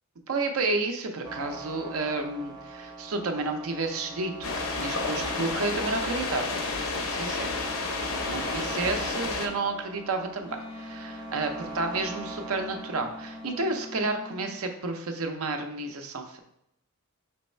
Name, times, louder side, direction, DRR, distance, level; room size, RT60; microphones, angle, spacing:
voice 1, 0.3-4.5 4.8-6.6 6.9-7.5 8.1-16.4, right 3 dB, 75° right, 5 dB, 0.6 m, -31 dB
sound 1, 1.2-14.0, right 3 dB, 20° right, 0.6 m, -42 dB
sound 2, 4.4-9.5, left 3 dB, 65° left, 0.6 m, -31 dB
Wind instrument woodwind instrument, 10.4-14.6, left 3 dB, 25° left, 0.3 m, -43 dB
3.5 x 3.1 x 4.3 m, 0.77 s
head